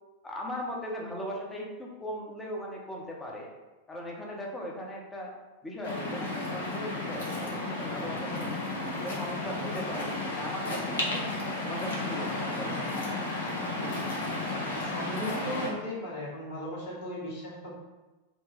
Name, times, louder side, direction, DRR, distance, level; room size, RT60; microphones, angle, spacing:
voice 1, 0.2-3.5 3.9-5.3 5.6-8.5 8.9-11.4 11.6-12.9, equal, 10° left, -2 dB, 0.8 m, -38 dB
Waves surf, 5.8-15.7, left 2 dB, 70° left, 0.8 m, -33 dB
voice 2, 14.7-17.7, equal, 50° left, -5 dB, 1.5 m, -37 dB
4.3 x 2.2 x 3.3 m, 1.1 s
figure-of-eight pair, 90°, 0 cm